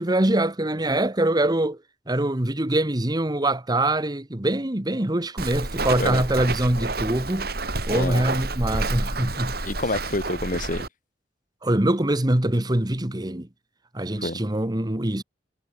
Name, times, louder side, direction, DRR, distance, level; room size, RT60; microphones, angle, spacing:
voice 1, 0.0-1.8 2.1-7.5 7.9-9.6 11.6-13.5 13.9-15.2, right 1 dB, 25° right, 1.5 m, -24 dB
Walk footsteps, 5.4-10.9, right 2 dB, 60° right, 5.5 m, -29 dB
voice 2, 7.9-8.2 9.6-10.9 14.2-14.4, left 2 dB, 50° left, 3.5 m, -28 dB
head